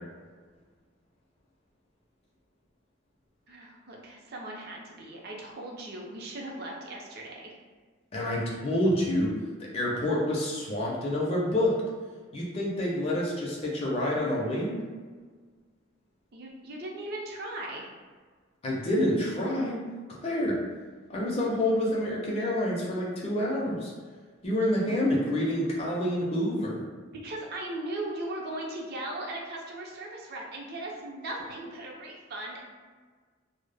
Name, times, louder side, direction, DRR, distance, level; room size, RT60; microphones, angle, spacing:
voice 1, 3.5-7.5 16.3-17.9 27.2-32.6, right 1 dB, 55° right, -1 dB, 0.5 m, -38 dB
voice 2, 8.1-9.3 9.7-11.8 12.3-14.8 18.6-19.8 20.2-20.6 21.1-23.9 24.4-26.9, left 1 dB, 30° left, -4 dB, 0.4 m, -27 dB
2.0 x 2.0 x 3.2 m, 1.5 s
head